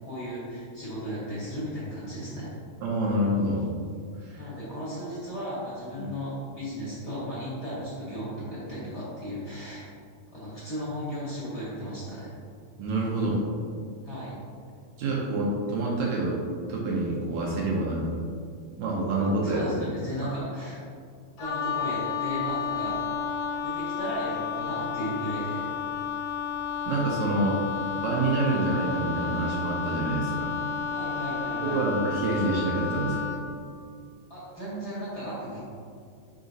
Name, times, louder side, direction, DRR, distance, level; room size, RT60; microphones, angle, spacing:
voice 1, 0.0-2.5 4.4-9.9 10.3-12.3 14.0-14.3 19.4-20.8 21.4-23.0 23.6-25.7 30.9-31.8 34.3-35.6, equal, 40° left, -10 dB, 1.7 m, -35 dB
voice 2, 2.8-3.6 4.2-4.5 5.9-6.1 12.8-13.4 15.0-16.4 16.7-18.2 18.8-19.7 20.1-20.4 26.9-27.6 28.0-30.6 31.6-33.2, right 2 dB, 75° right, -3 dB, 1.9 m, -27 dB
Wind instrument woodwind instrument, 21.4-33.5, left 6 dB, 75° left, 1.8 m, -31 dB
5.0 x 4.9 x 4.0 m, 2.2 s
omnidirectional pair, 3.5 m